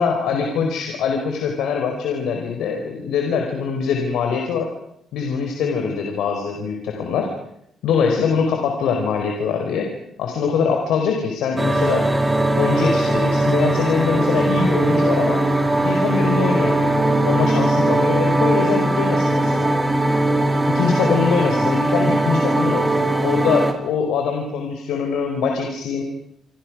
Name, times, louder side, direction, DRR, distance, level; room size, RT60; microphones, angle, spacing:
voice 1, 0.0-4.7 5.1-7.3 7.8-9.9 10.2-12.1 12.5-15.4 15.8-19.7 20.7-26.0, left 6 dB, 85° left, 3 dB, 4.8 m, -23 dB
sound 1, 11.6-23.7, right 1 dB, 15° right, 4.6 m, -19 dB
28.5 x 26.5 x 6.3 m, 0.75 s
cardioid pair, 90°, 0 cm